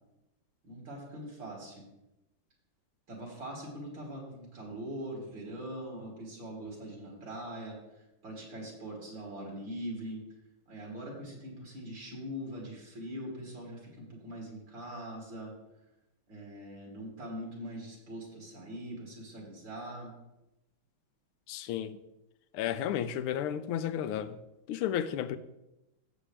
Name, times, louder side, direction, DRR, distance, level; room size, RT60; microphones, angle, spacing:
voice 1, 0.6-1.8 3.1-10.2 10.7-15.5 16.3-20.1, right 1 dB, 60° right, 3.7 m, -42 dB
voice 2, 21.5-22.0 22.5-24.4 24.7-25.4, left 10 dB, 85° left, 1.5 m, -32 dB
16.0 x 7.2 x 3.3 m
omnidirectional pair, 2.3 m